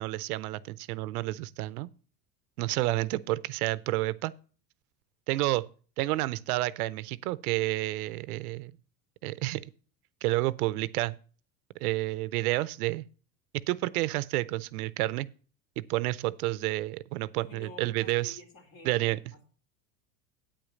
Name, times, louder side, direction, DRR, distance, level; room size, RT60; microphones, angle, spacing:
voice 1, 0.0-1.9 2.6-4.3 5.3-5.7 6.0-8.7 9.2-9.6 10.2-11.2 11.8-13.1 13.7-15.3 15.8-18.4 18.8-19.2, right 18 dB, 85° right, 0.6 m, -30 dB
voice 2, 17.4-19.5, left 1 dB, 50° left, 3.0 m, -50 dB
8.8 x 5.1 x 7.1 m
supercardioid pair, 95°, 43 cm